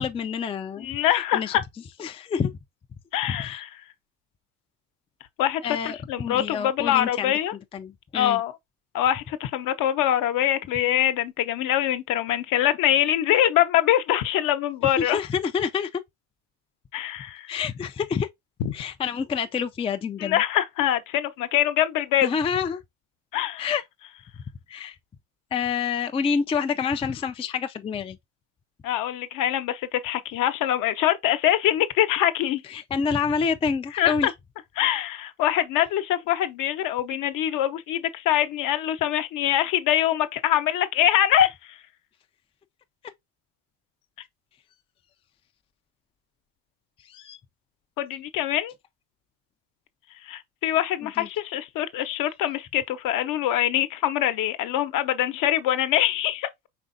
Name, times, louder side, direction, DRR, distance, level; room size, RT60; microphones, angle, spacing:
voice 1, 0.0-1.5 2.0-2.5 3.3-3.6 5.6-7.3 7.7-8.4 15.0-16.0 17.5-18.3 18.7-20.4 22.2-22.8 23.6-23.8 24.7-25.0 25.5-28.2 32.7-34.3 47.1-47.4 51.2-51.3, left 6 dB, 15° left, 0.4 m, -28 dB
voice 2, 0.8-1.6 3.1-3.7 5.4-7.5 8.1-8.5 8.9-15.2 16.9-17.5 18.6-18.7 20.2-22.3 23.3-23.7 28.8-32.6 34.0-34.3 34.8-41.8 48.0-48.7 50.2-56.5, left 12 dB, 60° left, 0.9 m, -24 dB
5.1 x 3.4 x 2.6 m
supercardioid pair, 95°, 36 cm